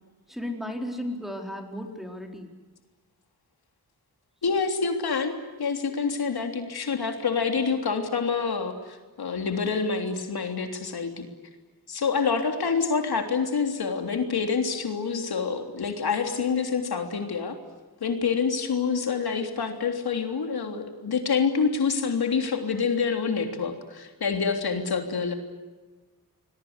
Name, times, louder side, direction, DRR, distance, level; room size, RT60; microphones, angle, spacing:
voice 1, 0.3-2.5, left 1 dB, ahead, 2 dB, 4.4 m, -34 dB
voice 2, 4.4-11.3 11.9-17.6 18.0-25.3, left 5 dB, 80° left, 5 dB, 3.4 m, -27 dB
28.0 x 21.5 x 8.2 m, 1.3 s
wide cardioid pair, 100°, 37 cm